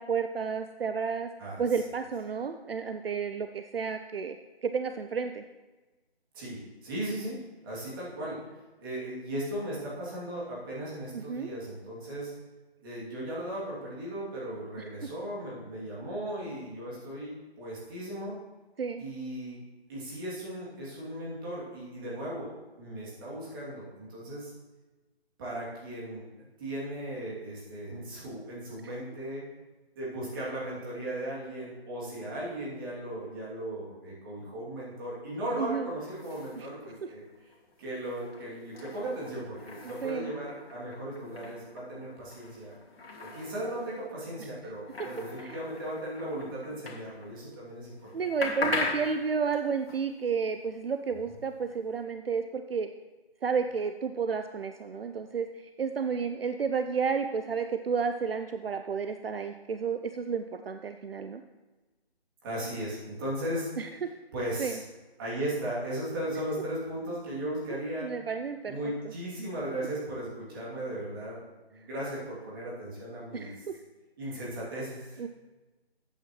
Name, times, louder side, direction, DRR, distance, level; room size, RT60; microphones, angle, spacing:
voice 1, 0.0-1.3 1.6-4.4 4.6-5.4 11.1-11.5 18.8-19.0 35.6-35.9 36.6-36.7 37.0-37.1 40.0-40.3 45.4-45.5 48.1-52.9 53.4-61.4 63.8-63.9 64.6-64.8 67.7-68.8 73.3-73.8 75.2-75.3, right 6 dB, 65° right, 8 dB, 0.6 m, -31 dB
voice 2, 6.3-7.4 7.6-12.3 12.8-18.4 19.0-19.6 19.9-22.5 22.8-24.5 25.4-26.2 26.6-29.4 30.0-37.5 37.8-42.7 43.2-48.1 62.4-63.7 64.3-64.8 65.2-68.1 68.7-71.4 71.7-73.6 74.2-75.3, right 1 dB, 20° right, -7 dB, 2.8 m, -37 dB
sound 1, 35.9-47.6 47.9-52.0, left 3 dB, 65° left, 2.3 m, -40 dB
13.5 x 8.9 x 3.2 m, 1.2 s
figure-of-eight pair, 165°, 32 cm